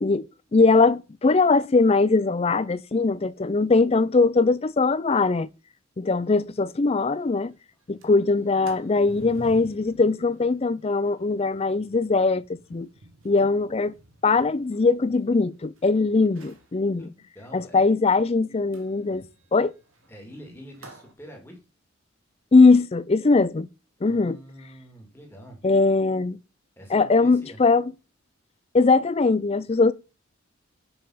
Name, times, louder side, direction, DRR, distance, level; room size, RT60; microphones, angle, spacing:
voice 1, 0.5-5.5 6.0-7.5 7.9-12.9 13.2-13.9 14.2-17.1 17.5-19.2 19.5-19.7 22.5-23.7 24.0-24.4 25.6-26.4 26.9-27.9 28.7-29.9, left 3 dB, 30° left, 0.4 m, -21 dB
Sliding door, 6.3-6.4 6.7-6.8 7.1-7.4 7.8-15.8 16.2-16.7 18.7-21.1, right 1 dB, 80° right, 1.8 m, -50 dB
voice 2, 17.0-17.9 20.1-21.6 24.0-25.6 26.8-27.6, equal, 10° left, 2.2 m, -45 dB
7.1 x 5.3 x 5.6 m
head